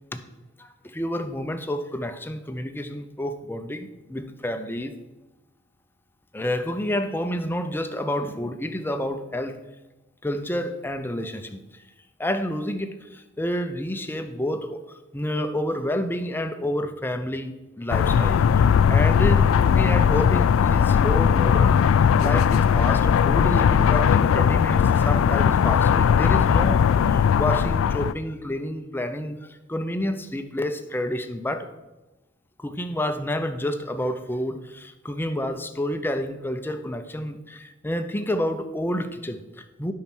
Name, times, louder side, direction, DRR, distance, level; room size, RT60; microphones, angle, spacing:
voice 1, 0.6-4.9 6.3-9.6 10.2-11.6 12.2-18.6 18.9-21.8 22.2-31.7 32.6-39.9, left 1 dB, 10° left, 8 dB, 0.6 m, -29 dB
sound 1, 17.9-28.1, left 7 dB, 80° left, 0.3 m, -19 dB
8.9 x 5.6 x 6.1 m, 1.1 s
head